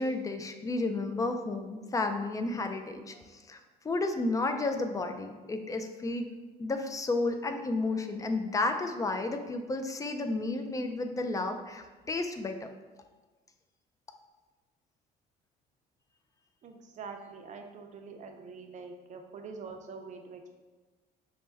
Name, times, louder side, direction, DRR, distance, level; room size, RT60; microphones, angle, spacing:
voice 1, 0.0-3.6 3.8-6.3 6.6-12.7, left 2 dB, 20° left, 7 dB, 0.4 m, -32 dB
voice 2, 16.6-20.6, right 4 dB, 45° right, 4 dB, 0.5 m, -45 dB
5.4 x 2.2 x 3.3 m, 1.3 s
cardioid pair, 110°, 17 cm